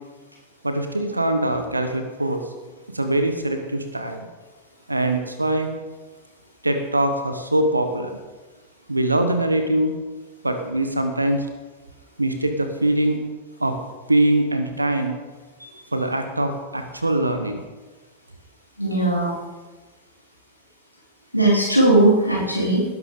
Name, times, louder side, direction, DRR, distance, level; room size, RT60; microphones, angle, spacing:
voice 1, 0.6-2.4 2.9-4.3 4.9-5.7 6.6-8.2 8.9-9.9 10.4-11.5 12.2-13.2 13.6-13.8 14.1-15.2 15.9-17.6, right 1 dB, 85° right, 7 dB, 1.2 m, -22 dB
voice 2, 18.8-19.4 21.3-22.8, right 2 dB, 90° left, -5 dB, 3.5 m, -18 dB
18.5 x 11.0 x 3.8 m, 1.3 s
figure-of-eight pair, 90°, 0 cm